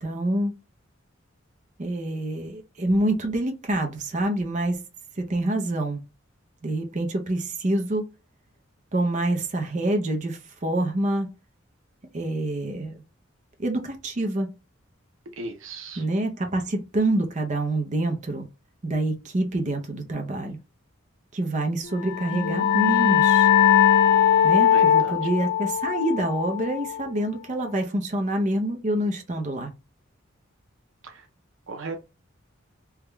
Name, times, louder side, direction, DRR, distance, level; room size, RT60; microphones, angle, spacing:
voice 1, 0.0-0.5 1.8-4.8 5.2-6.0 6.6-8.0 8.9-11.3 12.1-12.9 13.6-14.5 16.0-18.5 18.8-20.6 21.3-23.5 24.4-29.7, right 1 dB, 40° right, 0.6 m, -26 dB
voice 2, 15.4-16.0 24.7-25.2 31.0-31.3 31.7-32.0, right 3 dB, 80° right, 0.7 m, -36 dB
sound 1, 22.0-27.3, left 9 dB, 55° left, 0.3 m, -20 dB
3.5 x 2.3 x 3.1 m
head